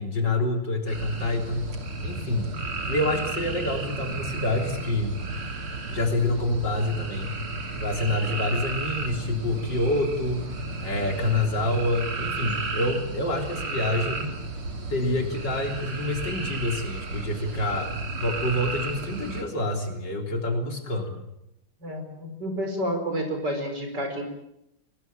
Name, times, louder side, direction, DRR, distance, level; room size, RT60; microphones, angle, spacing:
voice 1, 0.0-1.8 2.0-2.5 2.9-5.2 5.9-7.3 7.8-10.4 10.8-14.3 14.9-17.9 18.2-21.1, left 1 dB, 55° left, 3 dB, 4.3 m, -27 dB
sound 1, 0.9-19.4, right 3 dB, 85° right, 3.8 m, -33 dB
voice 2, 21.8-24.2, equal, 50° right, 5 dB, 5.5 m, -30 dB
24.0 x 20.0 x 9.0 m, 0.81 s
omnidirectional pair, 2.3 m